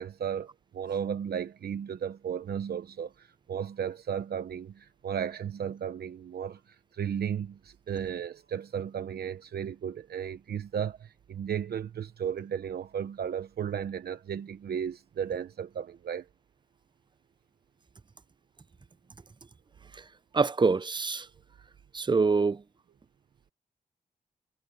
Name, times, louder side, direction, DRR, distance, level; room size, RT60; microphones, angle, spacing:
voice 1, 0.0-16.3, right 8 dB, 80° right, 0.9 m, -34 dB
voice 2, 20.3-21.3 21.9-22.6, right 4 dB, 30° right, 0.6 m, -25 dB
cardioid pair, 50°, 16 cm